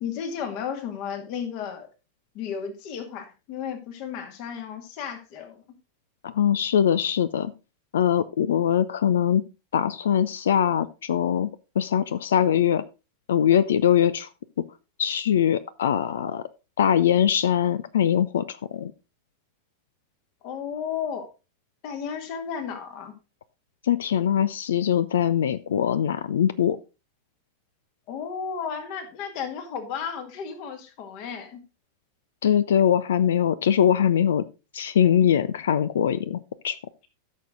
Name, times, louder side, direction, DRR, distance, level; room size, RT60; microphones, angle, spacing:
voice 1, 0.0-1.9 2.3-5.6 20.4-21.3 21.8-23.1 28.1-31.6, left 7 dB, 45° left, 8 dB, 2.0 m, -33 dB
voice 2, 6.2-7.5 7.9-9.4 9.7-11.5 11.8-12.8 13.3-14.3 15.0-16.4 16.8-18.9 23.8-26.8 32.4-34.4 34.7-36.4 36.6-36.8, left 9 dB, 60° left, 17 dB, 0.5 m, -22 dB
13.5 x 6.5 x 3.7 m, 0.30 s
figure-of-eight pair, 90°, 0 cm